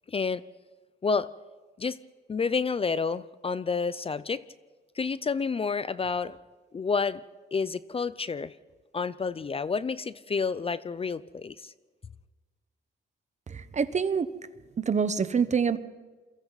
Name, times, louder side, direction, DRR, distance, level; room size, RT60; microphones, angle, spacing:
voice 1, 0.1-0.5 1.0-1.3 1.8-2.0 2.3-4.4 5.0-6.4 6.7-7.2 7.5-8.5 8.9-11.7, left 5 dB, 30° left, 0.5 m, -29 dB
voice 2, 13.5-14.3 14.8-15.8, right 6 dB, 35° right, 1.1 m, -26 dB
28.5 x 22.5 x 4.1 m
cardioid pair, 90°, 20 cm